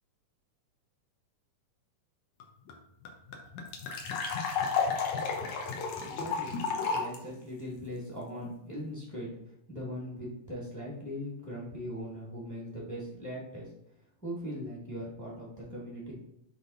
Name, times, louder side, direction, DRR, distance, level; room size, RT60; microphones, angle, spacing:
sound 1, 2.4-2.5 2.7-2.8 3.1-7.2, left 5 dB, 65° left, 2.1 m, -32 dB
voice 1, 5.6-6.5 6.8-9.3 9.7-13.7 14.2-16.1, equal, 5° left, -5 dB, 1.2 m, -40 dB
7.8 x 3.6 x 4.2 m, 0.80 s
omnidirectional pair, 4.0 m